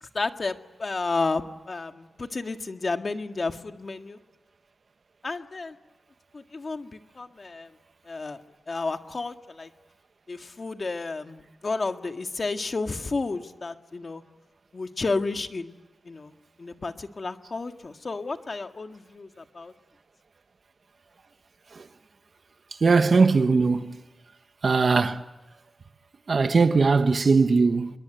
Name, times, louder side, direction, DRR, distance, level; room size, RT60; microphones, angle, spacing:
voice 1, 0.0-4.2 5.2-5.8 6.3-7.7 8.1-8.4 8.7-9.7 10.3-14.2 14.7-15.7 16.0-16.3 16.6-19.7, left 3 dB, 45° left, 1.8 m, -32 dB
voice 2, 22.8-24.0 24.6-25.2 26.3-27.9, right 4 dB, 60° right, 1.3 m, -20 dB
27.0 x 22.5 x 9.2 m
wide cardioid pair, 110°, 0 cm